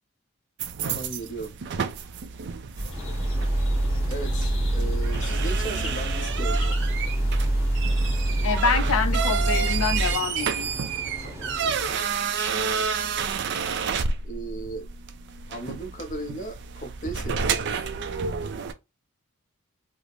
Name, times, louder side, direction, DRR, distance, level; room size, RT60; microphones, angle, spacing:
sound 1, 0.6-18.7, right 6 dB, 55° right, 0.4 m, -30 dB
voice 1, 0.8-1.6 4.1-6.8 11.2-12.1 14.2-14.9 15.5-17.9, right 2 dB, 35° left, 0.7 m, -37 dB
sound 2, 2.8-10.1, right 1 dB, 60° left, 1.5 m, -25 dB
sound 3, 2.9-11.9, equal, 15° right, 0.8 m, -41 dB
voice 2, 8.4-10.7, left 5 dB, 75° left, 0.6 m, -26 dB
3.3 x 2.0 x 3.9 m
head